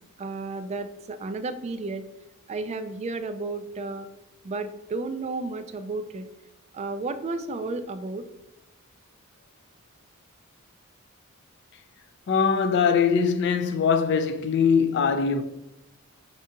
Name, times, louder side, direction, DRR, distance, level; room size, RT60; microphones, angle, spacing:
voice 1, 0.2-2.0 2.5-4.1 4.4-6.2 6.7-8.2, right 3 dB, 30° right, 0.3 m, -32 dB
voice 2, 12.3-15.4, left 6 dB, 50° left, 0.3 m, -22 dB
5.3 x 2.7 x 3.7 m
head